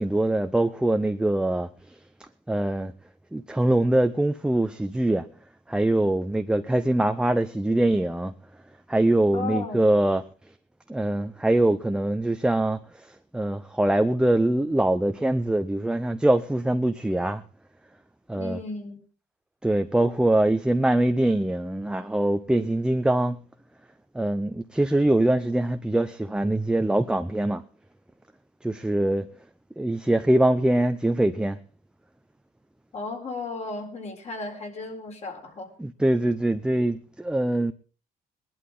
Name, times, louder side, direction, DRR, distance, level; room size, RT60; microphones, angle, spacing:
voice 1, 0.0-2.0 2.5-2.9 3.3-5.3 5.7-8.3 8.9-10.2 10.9-17.4 18.3-18.6 19.6-23.4 24.1-27.6 28.6-29.3 29.8-31.6 35.8-37.7, right 1 dB, 5° right, 0.6 m, -23 dB
voice 2, 9.3-9.8 18.4-19.0 32.9-35.7, left 3 dB, 40° left, 4.0 m, -34 dB
20.5 x 11.5 x 3.8 m
cardioid pair, 110°, 17 cm